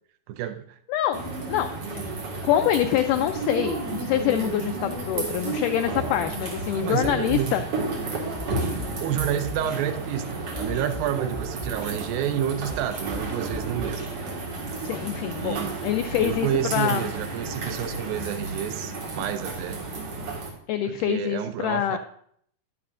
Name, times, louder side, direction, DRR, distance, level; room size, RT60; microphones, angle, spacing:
voice 1, 0.3-0.8 6.7-7.7 9.0-14.0 15.4-15.8 16.2-19.9 20.9-22.0, right 10 dB, 80° right, 8 dB, 2.3 m, -29 dB
voice 2, 0.9-1.2 1.5-1.7 1.9-2.0 2.4-7.6 14.8-17.1 20.7-22.0, left 11 dB, 90° left, 7 dB, 1.8 m, -25 dB
sound 1, 1.1-20.5, right 3 dB, 50° right, 2.4 m, -32 dB
sound 2, 6.3-14.3, equal, 20° right, 1.5 m, -40 dB
11.0 x 10.5 x 2.5 m, 0.65 s
omnidirectional pair, 4.3 m